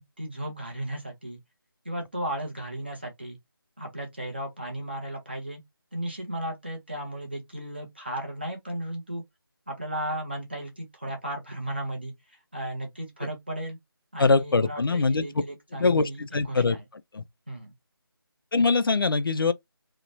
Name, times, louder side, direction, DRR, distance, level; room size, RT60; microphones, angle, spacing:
voice 1, 0.0-1.4 1.8-3.4 3.8-5.6 5.9-9.2 9.7-13.8 14.1-16.8 17.5-17.7, right 1 dB, 25° right, 0.6 m, -35 dB
voice 2, 14.2-15.2 15.7-16.8 17.1-17.2 18.5-19.5, left 4 dB, 65° left, 0.4 m, -23 dB
2.9 x 2.0 x 2.5 m
figure-of-eight pair, 180°, 13 cm